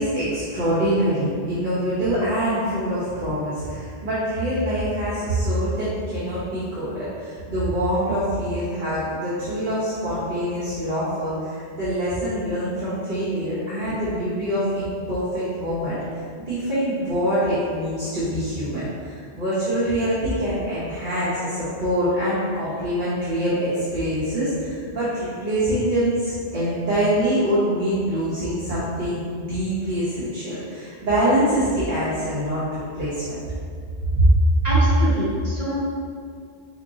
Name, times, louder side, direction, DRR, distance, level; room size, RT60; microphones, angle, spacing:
voice 1, 0.0-16.0 16.5-33.4 34.2-34.3, equal, 50° right, -11 dB, 0.9 m, -24 dB
voice 2, 34.6-35.8, right 1 dB, 35° right, -10 dB, 1.4 m, -25 dB
4.1 x 3.0 x 2.6 m, 2.2 s
omnidirectional pair, 1.1 m